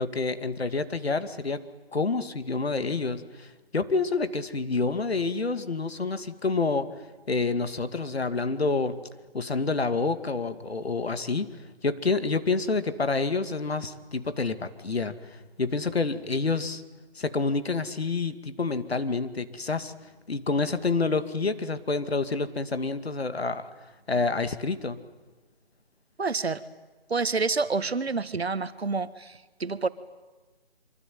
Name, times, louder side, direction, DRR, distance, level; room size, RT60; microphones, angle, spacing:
voice 1, 0.0-1.6 1.9-3.5 3.7-6.9 7.3-9.0 9.3-11.5 11.8-16.8 17.2-19.9 20.3-23.6 24.1-25.0, left 3 dB, 80° left, 11 dB, 2.5 m, -28 dB
voice 2, 26.2-26.6 27.1-29.9, right 4 dB, 85° right, 14 dB, 1.8 m, -28 dB
25.0 x 24.5 x 9.4 m, 1.2 s
hypercardioid pair, 175°, 31 cm